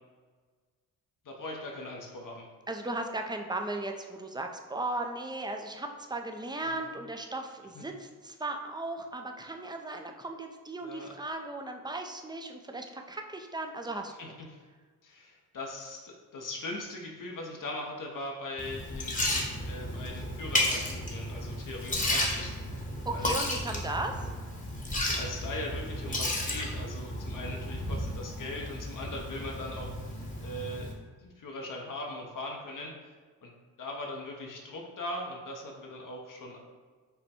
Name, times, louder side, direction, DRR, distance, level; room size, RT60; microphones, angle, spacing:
voice 1, 1.2-2.5 6.7-6.9 7.7-7.8 10.8-11.1 14.2-14.6 15.0-22.6 23.1-23.3 25.2-29.9 30.4-30.9 31.2-32.9 33.4-33.5 33.8-36.6, left 2 dB, 60° left, -1 dB, 0.8 m, -40 dB
voice 2, 2.7-14.3 23.1-24.3, right 2 dB, 10° right, 4 dB, 0.5 m, -36 dB
Liquid, 18.6-30.9, left 1 dB, 20° left, 1.0 m, -33 dB
5.5 x 2.2 x 4.3 m, 1.5 s
cardioid pair, 60°, 37 cm